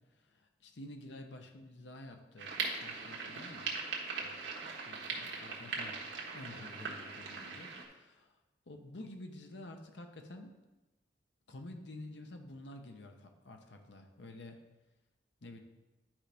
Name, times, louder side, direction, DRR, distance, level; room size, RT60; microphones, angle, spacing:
voice 1, 0.2-3.7 4.2-4.4 4.8-6.0 6.3-8.3 8.7-10.6 11.5-14.6 15.4-15.6, left 1 dB, 80° left, 5 dB, 0.8 m, -50 dB
sound 1, 2.4-7.8, right 4 dB, 90° right, 1.4 m, -40 dB
10.5 x 5.1 x 3.4 m, 1.1 s
head